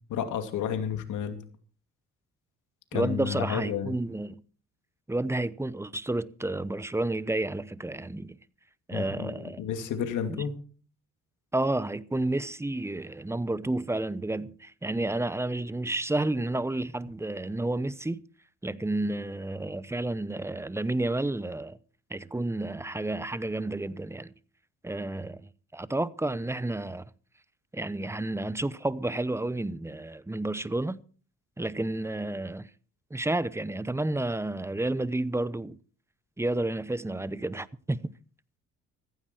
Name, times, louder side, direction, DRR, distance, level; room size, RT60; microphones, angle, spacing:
voice 1, 0.1-1.4 2.9-3.9 8.9-10.5, left 8 dB, 80° left, 2.5 m, -31 dB
voice 2, 2.9-4.4 5.1-8.4 8.9-9.6 10.3-10.5 11.5-18.2 18.6-21.8 22.1-24.3 24.8-27.0 27.7-31.0 31.6-32.7 33.1-35.8 36.4-38.1, right 2 dB, 10° right, 0.8 m, -31 dB
15.0 x 14.5 x 4.5 m
cardioid pair, 90°, 30 cm